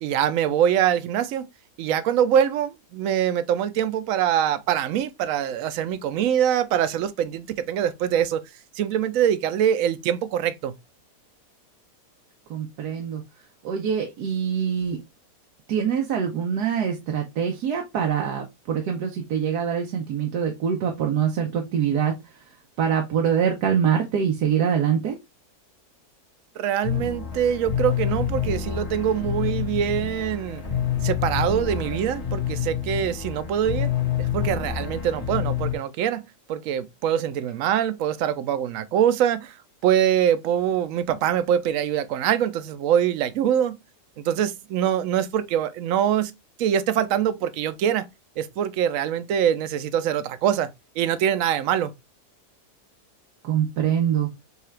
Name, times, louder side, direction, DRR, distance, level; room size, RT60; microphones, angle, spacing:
voice 1, 0.0-1.5 1.8-8.4 8.7-10.7 26.6-30.6 31.0-33.9 34.2-39.6 39.8-43.8 44.2-46.3 46.6-48.1 48.4-50.7 51.0-51.9, right 9 dB, 65° right, 0.9 m, -24 dB
voice 2, 12.5-13.2 13.6-15.0 15.7-25.2 53.4-54.3, right 8 dB, 90° right, 1.3 m, -24 dB
sound 1, 26.8-35.8, left 9 dB, 65° left, 2.0 m, -27 dB
6.6 x 2.4 x 3.1 m
omnidirectional pair, 1.7 m